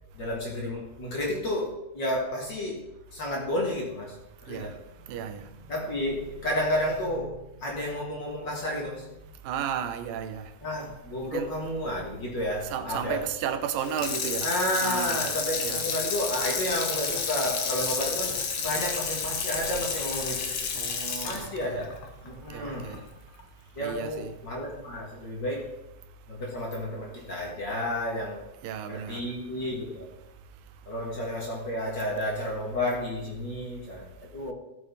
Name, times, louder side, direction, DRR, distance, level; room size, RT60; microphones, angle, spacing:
voice 1, 0.1-4.2 4.4-5.3 5.6-9.3 10.6-13.2 14.4-20.5 21.2-21.9 22.2-22.9 23.7-25.7 26.3-28.4 28.8-30.1 30.9-34.5, left 1 dB, 35° left, -2 dB, 2.9 m, -31 dB
voice 2, 4.4-4.8 5.0-5.7 9.4-10.6 11.2-11.5 12.7-14.5 14.8-15.3 15.6-15.8 20.8-21.8 22.3-23.0 23.4-23.5 23.8-24.3 28.6-29.3 30.4-30.7, right 8 dB, 85° right, 10 dB, 2.6 m, -34 dB
Water tap faucet / Sink (filling or washing), 13.8-23.0 23.4-23.5, left 5 dB, 55° left, 1.6 m, -31 dB
15.5 x 7.9 x 4.2 m, 0.97 s
omnidirectional pair, 3.9 m